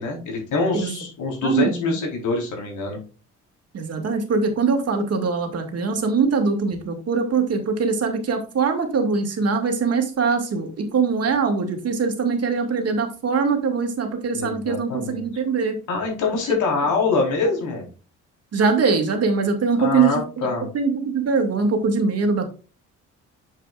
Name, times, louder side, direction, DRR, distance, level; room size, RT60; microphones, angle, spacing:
voice 1, 0.0-3.0 14.3-15.3 15.9-17.9 19.8-20.7, left 3 dB, 80° left, 0 dB, 4.1 m, -24 dB
voice 2, 1.4-2.0 3.7-15.7 18.5-20.5 20.7-22.5, right 5 dB, 55° right, 5 dB, 2.2 m, -22 dB
7.6 x 7.5 x 2.4 m, 0.34 s
cardioid pair, 90°, 30 cm